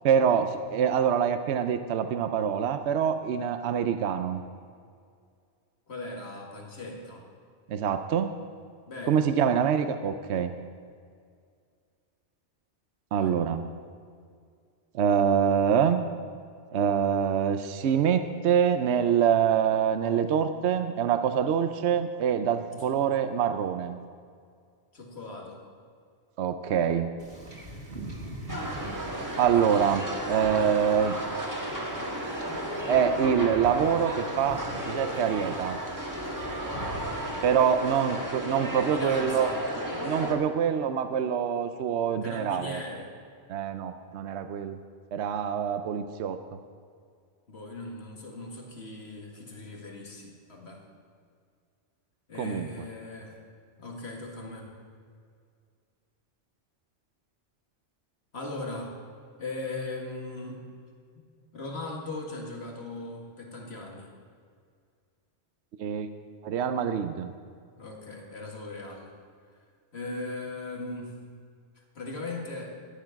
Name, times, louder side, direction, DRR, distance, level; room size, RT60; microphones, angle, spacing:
voice 1, 0.0-4.4 7.7-8.3 9.1-10.5 13.1-13.6 14.9-16.0 16.7-24.0 26.4-27.1 29.4-31.2 32.9-35.8 37.4-39.5 40.0-42.8 43.5-44.8 45.1-46.4 52.4-52.7 65.8-66.1 66.4-67.3, right 8 dB, 75° right, 9 dB, 0.9 m, -25 dB
voice 2, 5.9-7.3 8.9-9.4 13.2-13.4 22.7-23.1 24.9-25.6 38.9-39.6 42.2-43.1 47.5-50.8 52.3-53.4 53.8-54.7 58.3-59.0 59.4-60.7 61.1-61.2 61.5-64.1 67.8-69.1 69.9-71.3 72.0-72.8, left 2 dB, 65° left, 0 dB, 2.2 m, -39 dB
Wind / Ocean / Boat Water vehicle, 27.2-37.6, right 1 dB, 55° right, 2.2 m, -44 dB
sound 1, 28.5-40.4, equal, 15° right, 1.4 m, -34 dB
13.0 x 10.0 x 5.8 m, 2.2 s
omnidirectional pair, 1.2 m